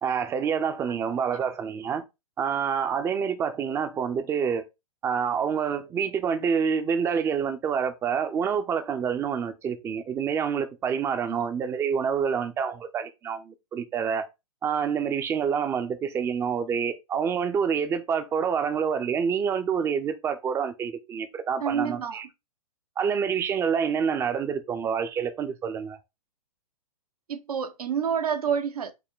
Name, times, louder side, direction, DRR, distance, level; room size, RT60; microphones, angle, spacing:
voice 1, 0.0-2.0 2.4-4.6 5.0-14.2 14.6-22.3 23.0-26.0, right 7 dB, 15° right, 0.4 m, -27 dB
voice 2, 21.6-22.2 27.3-28.9, right 7 dB, 75° right, 0.7 m, -28 dB
4.7 x 2.1 x 3.6 m
hypercardioid pair, 120°, 19 cm